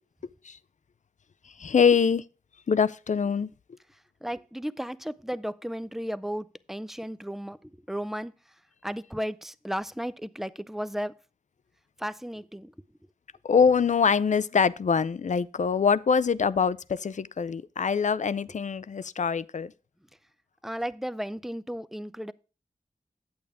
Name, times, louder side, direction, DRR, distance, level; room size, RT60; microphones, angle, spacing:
voice 1, 1.4-2.2 2.7-3.5 13.4-19.7, left 6 dB, 60° left, 0.4 m, -24 dB
voice 2, 4.2-8.3 8.8-11.1 12.0-12.7 20.6-22.3, equal, ahead, 0.5 m, -34 dB
8.7 x 8.4 x 3.5 m
wide cardioid pair, 55°, 14 cm